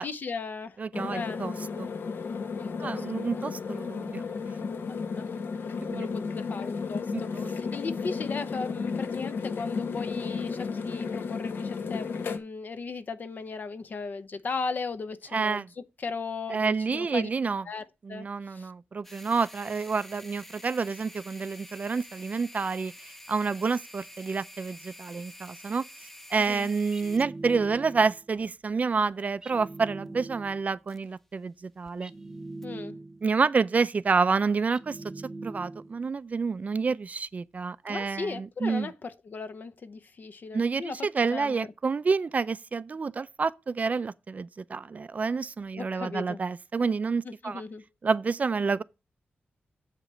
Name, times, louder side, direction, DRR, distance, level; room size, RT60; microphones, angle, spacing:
voice 1, 0.0-0.8 1.1-1.4 2.6-3.1 4.9-5.3 5.9-15.6 16.0-17.3 17.7-18.7 26.4-26.7 32.6-33.0 37.9-41.6 45.8-46.4 47.2-47.8, left 4 dB, 55° left, 0.7 m, -37 dB
voice 2, 0.8-1.9 2.8-4.2 5.8-6.1 7.1-7.5 15.3-15.7 16.5-17.6 18.0-22.9 23.3-25.8 26.3-32.1 33.2-35.0 35.4-38.9 40.5-47.6 48.0-48.8, right 4 dB, 40° right, 0.4 m, -28 dB
sound 1, 0.9-12.4, left 5 dB, 75° left, 1.1 m, -33 dB
sound 2, 19.0-31.4 31.6-31.9 32.6-32.7, left 1 dB, 5° left, 0.6 m, -49 dB
sound 3, 26.9-28.3 29.4-30.7 32.0-33.4 34.7-36.1, right 2 dB, 20° right, 0.9 m, -42 dB
7.5 x 5.0 x 6.7 m
wide cardioid pair, 135°, 4 cm